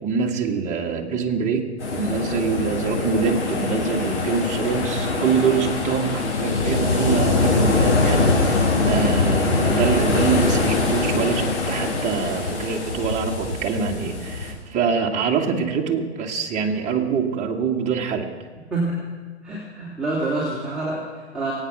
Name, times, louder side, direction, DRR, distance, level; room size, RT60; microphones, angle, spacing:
voice 1, 0.0-18.3, right 6 dB, 20° right, 0 dB, 1.8 m, -25 dB
sound 1, 1.8-14.5, left 3 dB, 75° left, 5.4 m, -22 dB
voice 2, 18.7-19.0 19.4-21.5, right 2 dB, ahead, -9 dB, 3.2 m, -27 dB
22.5 x 8.9 x 6.1 m, 1.4 s
hypercardioid pair, 125°, 35 cm